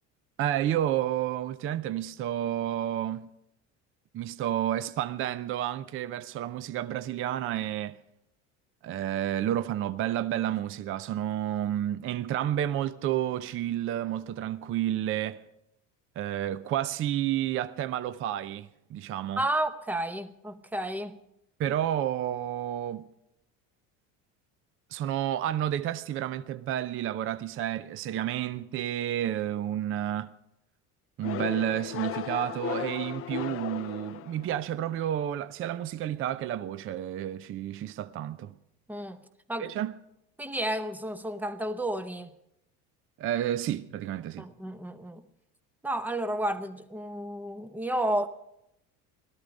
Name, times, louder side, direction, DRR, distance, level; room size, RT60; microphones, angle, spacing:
voice 1, 0.4-3.3 4.1-8.0 8.8-15.4 16.2-19.4 21.6-23.0 24.9-30.3 31.2-38.5 39.6-39.9 43.2-44.5, right 11 dB, 35° right, 0.5 m, -30 dB
voice 2, 19.4-21.2 38.9-39.2 39.5-39.7 40.4-42.3 44.4-45.2 45.8-48.3, right 1 dB, 5° right, 0.7 m, -31 dB
sound 1, 31.2-34.8, left 13 dB, 40° left, 0.5 m, -36 dB
17.5 x 13.5 x 5.2 m
cardioid pair, 130°, 35 cm